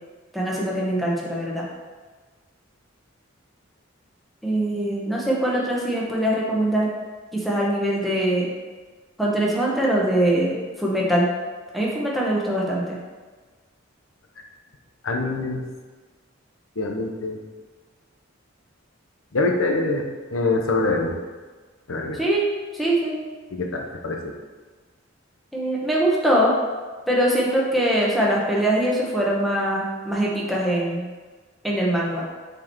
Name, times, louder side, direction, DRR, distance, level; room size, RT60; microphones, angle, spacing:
voice 1, 0.3-1.6 4.4-6.9 7.3-8.5 9.2-11.3 11.7-13.0 22.1-22.5 22.7-23.2 25.5-26.5 27.1-31.1 31.6-32.2, right 1 dB, ahead, -5 dB, 1.2 m, -22 dB
voice 2, 15.0-15.6 16.8-17.4 19.3-20.0 20.3-21.2 21.9-22.2 23.5-24.3, left 2 dB, 85° left, 2 dB, 0.9 m, -24 dB
6.1 x 4.6 x 4.5 m, 1.4 s
head